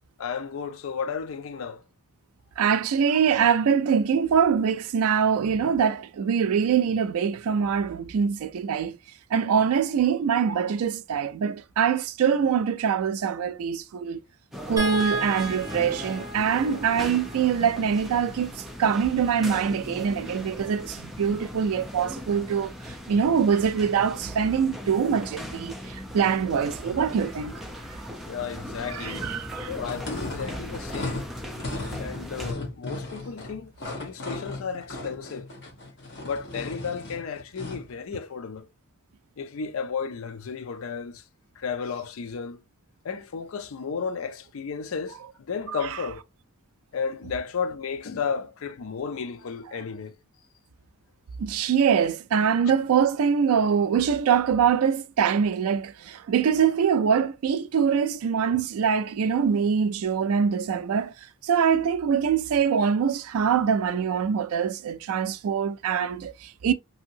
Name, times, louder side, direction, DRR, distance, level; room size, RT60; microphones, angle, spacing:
voice 1, 0.2-1.8 28.3-29.3 29.7-31.3 32.0-35.5 36.2-38.7 39.4-41.2 41.6-42.6 43.0-46.2 46.9-50.2 58.5-58.6, left 6 dB, 70° left, 0.4 m, -33 dB
voice 2, 2.6-9.0 9.3-14.2 14.7-22.7 23.1-27.5 28.9-29.7 51.4-61.1 61.4-66.7, right 7 dB, 75° right, 0.3 m, -24 dB
sound 1, 14.5-32.5, equal, ahead, 0.5 m, -38 dB
sound 2, 14.8-21.1 22.6-22.8 23.1-23.3, right 1 dB, 15° right, 0.9 m, -37 dB
sound 3, 29.8-37.9, left 2 dB, 50° left, 1.1 m, -36 dB
2.7 x 2.7 x 2.6 m
head